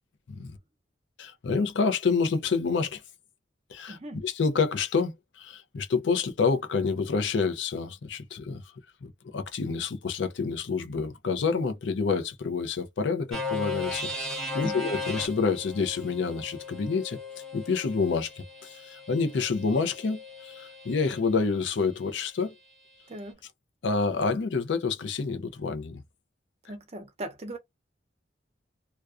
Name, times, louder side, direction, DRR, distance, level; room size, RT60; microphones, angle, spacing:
voice 1, 1.2-3.0 3.7-8.6 9.0-17.2 17.5-22.5 23.8-26.0, left 4 dB, 80° left, 0.5 m, -28 dB
voice 2, 3.9-4.2 14.6-14.9 23.1-23.4 26.7-27.6, right 1 dB, 35° right, 0.6 m, -39 dB
sound 1, 13.3-21.2, left 3 dB, 5° left, 0.6 m, -37 dB
2.3 x 2.2 x 2.4 m
head